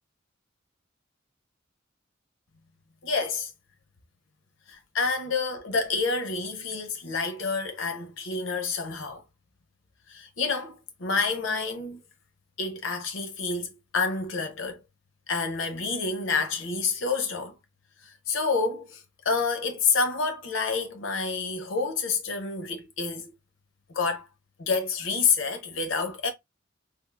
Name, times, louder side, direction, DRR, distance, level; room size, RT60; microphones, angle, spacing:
voice 1, 3.0-3.5 4.7-9.2 10.1-10.7 11.0-12.0 12.6-14.8 15.3-17.5 18.3-19.0 19.2-23.3 23.9-24.2 24.6-26.3, left 4 dB, 70° left, 0.8 m, -28 dB
3.6 x 2.4 x 2.3 m
head